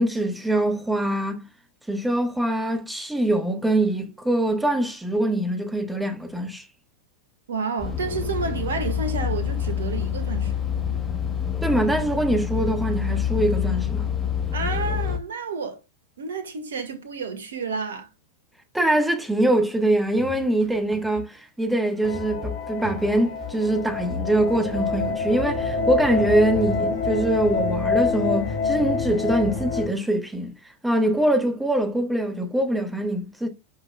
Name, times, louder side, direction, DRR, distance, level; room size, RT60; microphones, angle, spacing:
voice 1, 0.0-1.4 1.9-6.7 11.6-14.1 18.7-30.5 30.8-33.5, right 1 dB, 5° right, 1.3 m, -23 dB
voice 2, 7.5-10.6 14.5-15.8 16.2-18.1, right 5 dB, 65° right, 1.6 m, -30 dB
sound 1, 7.8-15.2, left 8 dB, 15° left, 2.3 m, -27 dB
sound 2, 19.8-25.1, left 3 dB, 25° right, 1.6 m, -38 dB
sound 3, 22.0-29.9, left 4 dB, 55° left, 2.0 m, -26 dB
11.5 x 5.7 x 2.2 m
figure-of-eight pair, 90°, 0 cm